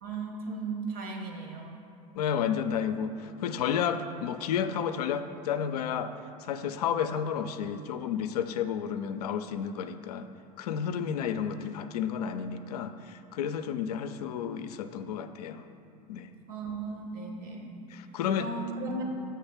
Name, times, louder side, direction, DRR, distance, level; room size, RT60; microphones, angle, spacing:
voice 1, 0.0-1.8 16.5-19.0, right 3 dB, 50° right, 2 dB, 1.2 m, -37 dB
voice 2, 2.1-6.1 6.4-10.3 10.6-15.6 16.1-16.3 17.9-18.5, left 8 dB, 75° left, 9 dB, 0.4 m, -31 dB
7.1 x 3.7 x 5.6 m, 2.5 s
hypercardioid pair, 80°, 20 cm